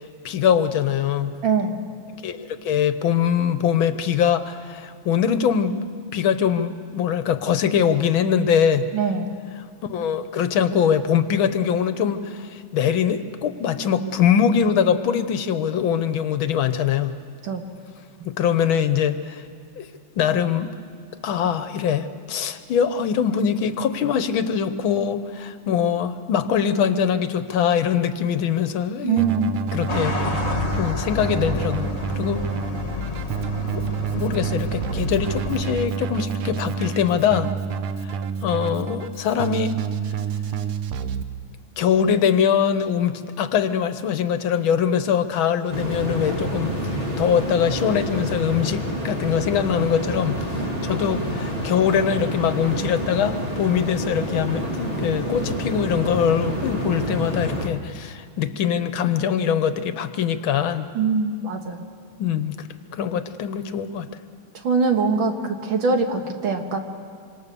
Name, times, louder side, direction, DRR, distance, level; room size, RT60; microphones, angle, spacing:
voice 1, 0.2-1.4 2.1-5.8 6.1-8.9 9.9-17.2 18.2-19.4 19.8-19.9 20.2-20.7 21.2-29.3 29.7-30.2 30.4-31.9 32.2-32.4 33.7-33.8 34.1-37.5 38.4-39.8 41.8-60.9 62.2-62.6 62.9-64.1, left 8 dB, 70° left, 11 dB, 1.6 m, -22 dB
voice 2, 1.4-1.8 8.9-9.3 17.4-17.6 29.0-29.5 50.6-50.7 61.0-61.8 64.6-66.8, right 5 dB, 65° right, 4 dB, 2.3 m, -22 dB
Keyboard (musical), 29.2-41.2, right 7 dB, 80° right, 1.8 m, -29 dB
sound 1, 29.9-35.8, left 2 dB, 30° left, 1.8 m, -30 dB
sound 2, 45.7-57.7, equal, 25° right, 2.2 m, -28 dB
25.5 x 25.0 x 6.9 m, 2.1 s
omnidirectional pair, 2.4 m